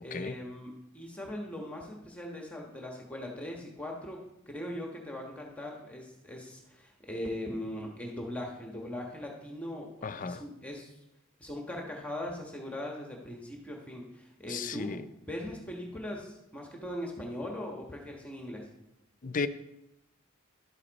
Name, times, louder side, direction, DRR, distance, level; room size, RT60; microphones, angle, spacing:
voice 1, 0.0-10.9 11.4-18.7, left 1 dB, 5° left, 0 dB, 1.3 m, -40 dB
voice 2, 10.0-10.4 14.5-15.0 19.2-19.5, left 4 dB, 40° left, 11 dB, 0.5 m, -34 dB
11.5 x 8.3 x 4.1 m, 0.88 s
head